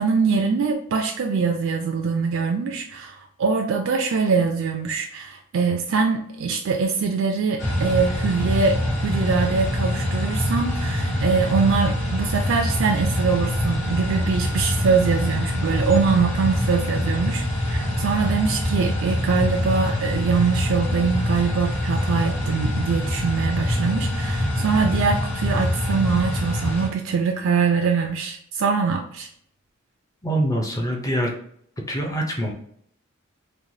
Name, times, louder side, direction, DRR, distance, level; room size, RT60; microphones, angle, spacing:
voice 1, 0.0-29.3, right 5 dB, 65° right, 3 dB, 0.3 m, -23 dB
sound 1, 7.6-26.9, left 1 dB, 60° left, 1.1 m, -24 dB
voice 2, 30.2-31.3 31.9-32.5, right 1 dB, 15° left, 1 dB, 0.5 m, -24 dB
3.1 x 2.1 x 2.6 m, 0.65 s
head